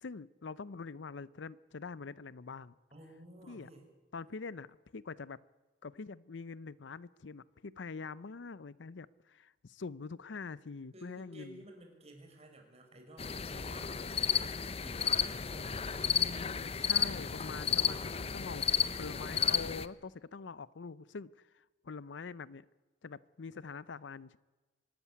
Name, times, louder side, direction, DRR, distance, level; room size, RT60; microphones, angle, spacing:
voice 1, 0.0-2.7 3.4-3.7 4.1-5.4 5.8-11.6 16.1-18.6 19.0-22.7 23.0-24.4, left 4 dB, 75° left, 20 dB, 0.6 m, -45 dB
voice 2, 2.9-3.9 10.9-16.4, right 1 dB, 35° right, 3 dB, 4.9 m, -54 dB
sound 1, 13.2-19.9, left 7 dB, 35° left, 0.7 m, -32 dB
24.5 x 13.0 x 9.7 m, 1.2 s
head